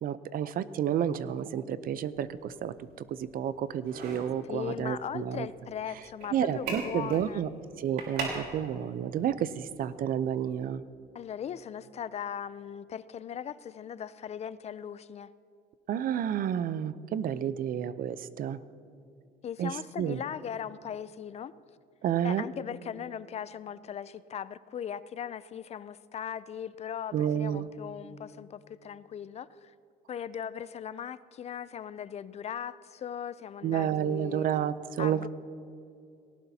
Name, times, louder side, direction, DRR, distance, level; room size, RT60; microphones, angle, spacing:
voice 1, 0.0-2.7 3.1-5.5 6.3-7.5 7.8-10.8 15.9-18.6 19.6-19.7 20.0-20.2 22.0-22.4 27.1-27.7 33.6-35.2, right 9 dB, 55° right, 15 dB, 0.6 m, -30 dB
sound 1, 1.8-10.6, right 3 dB, 75° right, 3.7 m, -42 dB
voice 2, 4.4-7.4 11.1-15.3 19.4-21.5 22.2-29.7 30.1-34.5 35.0-35.3, left 8 dB, 40° left, 16 dB, 0.4 m, -39 dB
19.0 x 17.5 x 2.8 m, 2.6 s
cardioid pair, 110°, 17 cm